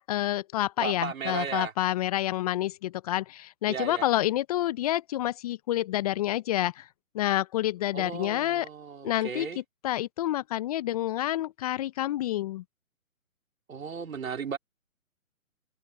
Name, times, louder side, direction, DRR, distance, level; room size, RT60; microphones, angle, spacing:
voice 1, 0.0-6.9 7.1-8.7 9.0-9.5 9.8-12.6, left 14 dB, 25° left, 0.9 m, -28 dB
voice 2, 0.8-1.7 3.7-4.1 7.9-9.6 13.7-14.6, right 6 dB, 70° right, 2.7 m, -35 dB
figure-of-eight pair, 135°, 42 cm